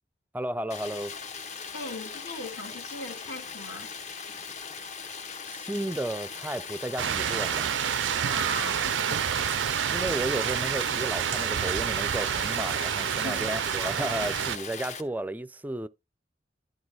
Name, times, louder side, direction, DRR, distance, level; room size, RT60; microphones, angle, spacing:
voice 1, 0.3-1.2 5.5-7.7 9.9-15.9, right 1 dB, 10° right, 0.3 m, -33 dB
Stream, 0.7-15.0, left 5 dB, 40° left, 0.8 m, -39 dB
voice 2, 1.7-3.9 8.2-9.3 12.9-13.5, left 2 dB, 65° left, 2.0 m, -39 dB
sound 1, 7.0-14.6, right 9 dB, 85° right, 0.4 m, -28 dB
11.0 x 3.9 x 4.6 m
head